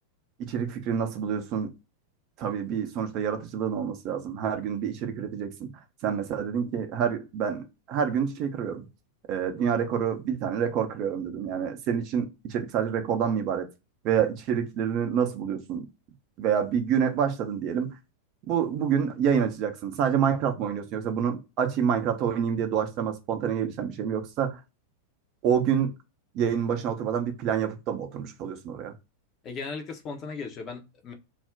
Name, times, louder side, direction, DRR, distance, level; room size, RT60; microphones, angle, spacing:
voice 1, 0.4-1.7 2.4-5.7 6.0-8.9 9.3-13.7 14.0-15.9 16.4-18.0 18.5-24.6 25.4-25.9 26.3-28.9, right 8 dB, 40° right, 0.5 m, -27 dB
voice 2, 29.4-31.1, left 4 dB, 30° left, 0.6 m, -37 dB
2.4 x 2.1 x 3.4 m
figure-of-eight pair, 90°, 0 cm